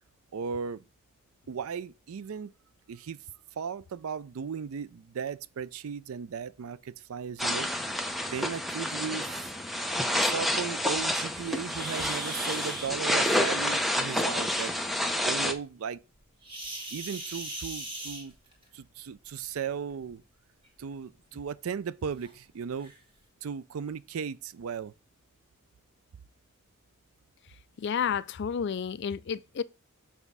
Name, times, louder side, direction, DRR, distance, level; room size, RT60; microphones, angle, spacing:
voice 1, 0.3-0.8 1.5-2.5 2.9-3.2 3.6-7.7 8.3-9.5 10.2-14.8 15.2-16.0 16.9-18.3 18.7-20.2 20.8-22.9 23.4-24.9, right 6 dB, 75° right, 0.4 m, -36 dB
sound 1, 7.4-15.5, left 1 dB, ahead, 0.6 m, -29 dB
sound 2, 11.7-12.9 16.4-18.7 19.9-20.1 20.7-20.8 21.3-21.4 22.2-22.3 22.8-23.0, right 1 dB, 25° right, 2.2 m, -39 dB
voice 2, 27.8-29.6, left 7 dB, 50° left, 0.4 m, -31 dB
7.2 x 3.5 x 5.5 m
head